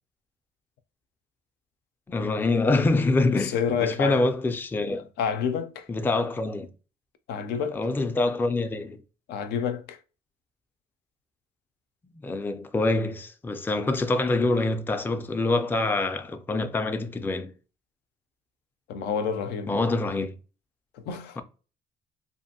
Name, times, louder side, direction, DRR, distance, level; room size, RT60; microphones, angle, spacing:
voice 1, 2.1-5.1 5.9-6.7 7.6-9.0 12.0-17.5 19.7-20.3, left 2 dB, 10° left, 0.4 m, -25 dB
voice 2, 3.1-4.4 4.9-5.9 7.3-7.8 9.3-10.0 18.9-19.7 20.9-21.4, left 7 dB, 80° left, 0.5 m, -29 dB
2.6 x 2.5 x 2.7 m
cardioid pair, 110°, 17 cm